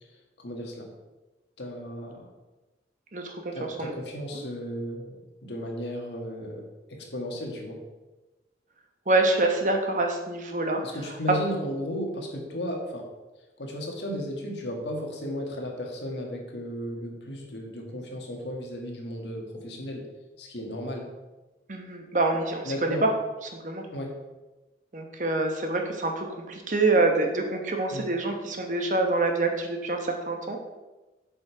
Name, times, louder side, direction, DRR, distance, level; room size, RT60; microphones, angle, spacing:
voice 1, 0.4-0.9 1.6-2.3 3.5-7.8 10.8-13.1 13.6-20.1 20.4-21.1 22.6-23.1 23.9-24.1 27.9-28.1, equal, 80° left, 1 dB, 1.6 m, -34 dB
voice 2, 3.1-3.9 4.3-4.4 9.1-10.8 21.7-23.0 23.6-23.9 24.9-30.6, right 2 dB, 45° right, 3 dB, 1.0 m, -26 dB
7.6 x 5.2 x 4.5 m, 1.1 s
head